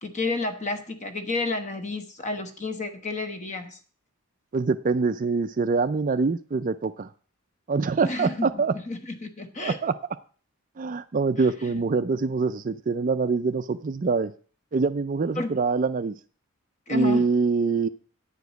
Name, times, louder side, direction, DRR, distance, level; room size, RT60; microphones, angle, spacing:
voice 1, 0.0-3.8 8.0-9.8 11.7-11.8 15.4-15.6 16.9-17.3, left 3 dB, 30° left, 8 dB, 1.1 m, -31 dB
voice 2, 4.5-7.1 7.7-8.8 9.6-10.0 10.8-14.3 14.7-16.1 16.9-17.9, right 4 dB, 35° right, 12 dB, 0.4 m, -24 dB
9.9 x 5.0 x 8.0 m, 0.40 s
head